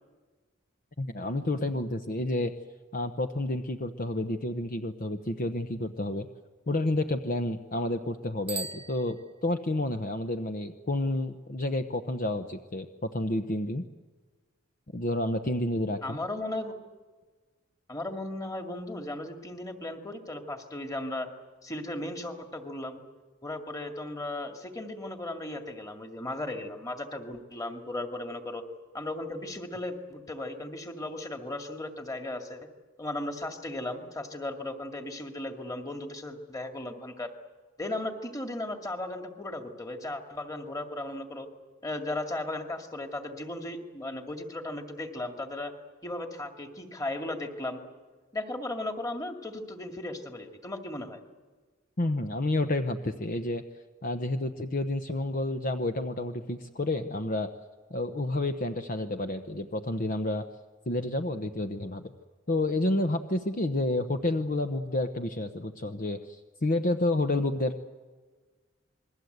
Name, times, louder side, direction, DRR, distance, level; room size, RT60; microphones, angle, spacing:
voice 1, 1.0-2.5 2.9-6.3 6.7-13.8 14.9-16.2 52.0-53.6 54.0-57.5 57.9-60.5 60.9-62.1 62.5-67.8, left 2 dB, 45° left, 7 dB, 0.9 m, -30 dB
Bicycle bell, 8.4-9.8, right 4 dB, 30° right, 0.9 m, -40 dB
voice 2, 16.0-16.7 17.9-21.3 21.6-23.0 23.4-28.6 28.9-32.7 33.0-37.3 37.8-41.5 41.8-45.7 46.0-47.8 48.3-51.2, left 1 dB, 20° left, 4 dB, 2.3 m, -36 dB
28.0 x 21.5 x 8.1 m, 1.4 s
head